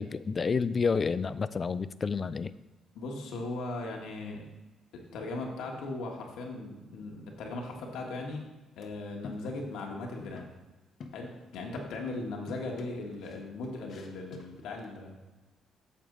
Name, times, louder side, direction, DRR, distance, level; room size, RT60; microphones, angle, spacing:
voice 1, 0.0-2.5, left 5 dB, 40° left, 15 dB, 0.3 m, -29 dB
voice 2, 2.9-4.4 4.9-8.4 8.8-10.5 11.1-15.2, left 2 dB, 85° left, 1 dB, 1.5 m, -38 dB
sound 1, 8.8-8.9 9.2-9.9 10.2-10.6 11.0-12.2 12.5-14.9, left 4 dB, 60° left, 0.9 m, -48 dB
8.6 x 6.7 x 3.8 m, 1.1 s
cardioid pair, 90°, 0 cm